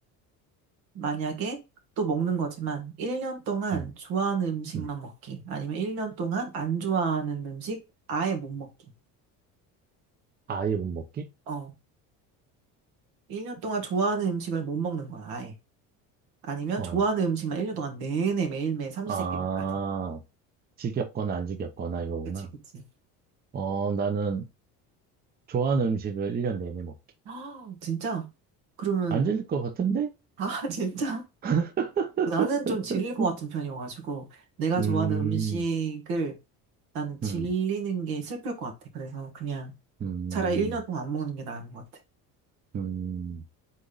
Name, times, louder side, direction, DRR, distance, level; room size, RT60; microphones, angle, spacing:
voice 1, 0.9-1.6 2.0-7.8 8.1-8.7 11.5-11.7 13.3-15.5 16.4-19.6 22.4-22.5 22.7-22.8 27.2-28.2 28.8-29.3 30.4-31.2 32.3-36.3 36.9-39.7 40.3-41.8, right 5 dB, 80° right, 1.8 m, -30 dB
voice 2, 10.5-11.3 16.8-17.0 19.1-20.2 20.8-22.5 23.5-24.5 25.5-26.9 29.1-30.1 31.4-33.3 34.8-35.6 37.2-37.5 40.0-40.8 42.7-43.4, right 6 dB, 25° right, 0.6 m, -29 dB
4.0 x 3.4 x 3.8 m
cardioid pair, 130°, 36 cm